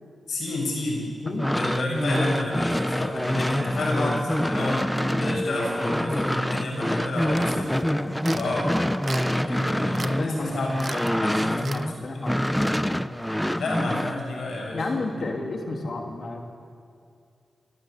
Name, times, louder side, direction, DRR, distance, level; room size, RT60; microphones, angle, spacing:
voice 1, 0.3-1.0 1.5-4.8 5.2-7.7 8.3-8.7 9.5-11.8 13.6-14.8 15.2-15.3, left 2 dB, 80° left, -1 dB, 7.4 m, -30 dB
voice 2, 1.2-1.5 5.0-5.3 7.8-8.4 9.6-10.5 11.3-12.8 14.7-16.4, left 2 dB, 60° left, 2 dB, 3.2 m, -33 dB
sound 1, 1.3-11.9 12.2-14.2, equal, 5° left, 0.9 m, -26 dB
sound 2, 7.4-7.7 8.2-8.5 9.0-9.5 9.9-10.1 10.4-10.5 10.8-11.1 11.6-11.8, right 4 dB, 60° right, 0.9 m, -37 dB
27.5 x 12.5 x 8.5 m, 2.3 s
cardioid pair, 50°, 0 cm